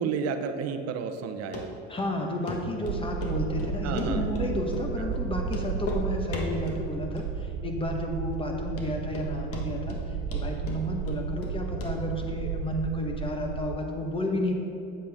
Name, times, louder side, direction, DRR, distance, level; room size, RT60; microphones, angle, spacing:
voice 1, 0.0-1.7 3.8-4.3 5.0-5.1, right 6 dB, 50° right, 7 dB, 0.7 m, -31 dB
Run, 1.5-1.6 2.0-2.1 2.5-2.6 2.9-4.5 4.7-4.9 5.1-5.2 5.5-6.0 6.3-6.8 7.2-7.6 7.9-8.0 8.4-8.5 8.8-9.3 9.5-10.0 10.3-11.5 11.8-11.9 12.2-12.3, left 3 dB, 45° left, 1.5 m, -36 dB
voice 2, 1.9-14.5, left 1 dB, 15° left, 2 dB, 1.2 m, -32 dB
sound 1, 2.9-13.8, right 6 dB, 85° right, 0.7 m, -33 dB
8.7 x 7.5 x 3.6 m, 2.7 s
supercardioid pair, 100°, 32 cm